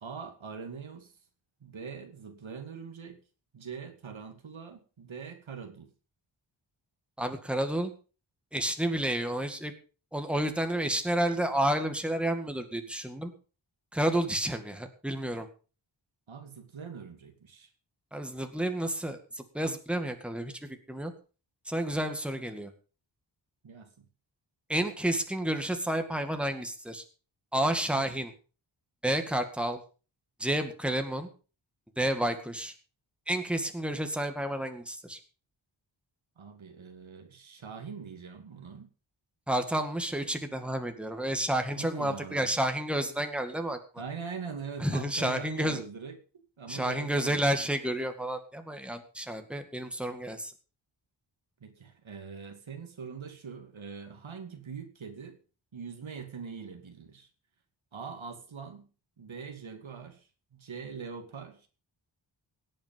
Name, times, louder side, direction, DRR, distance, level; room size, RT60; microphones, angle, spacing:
voice 1, 0.0-1.1 1.6-3.2 3.5-5.9 16.3-17.7 23.6-24.1 36.4-38.9 41.8-42.5 44.0-46.2 46.6-47.5 51.6-55.4 55.7-57.3 57.9-58.9 59.2-61.7, right 6 dB, 85° right, 6 dB, 2.5 m, -42 dB
voice 2, 7.2-7.9 8.5-9.7 10.1-13.3 13.9-15.5 18.1-21.1 21.7-22.7 24.7-27.0 27.5-28.3 29.0-29.8 30.4-31.3 32.0-32.7 33.3-35.2 39.5-43.8 44.8-45.8 46.7-50.5, right 1 dB, ahead, 6 dB, 2.0 m, -30 dB
17.5 x 8.8 x 5.4 m, 0.35 s
wide cardioid pair, 110°, 46 cm